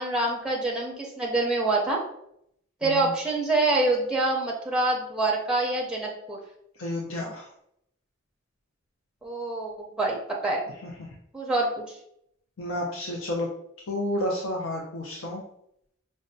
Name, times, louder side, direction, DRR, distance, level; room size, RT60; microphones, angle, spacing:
voice 1, 0.0-2.0 2.8-6.4 9.2-10.6 11.3-11.8, right 2 dB, 5° right, -2 dB, 0.5 m, -26 dB
voice 2, 6.8-7.5 11.0-11.1 12.6-13.5 13.9-15.4, left 1 dB, 80° left, -2 dB, 0.6 m, -30 dB
5.1 x 2.2 x 2.6 m, 0.75 s
head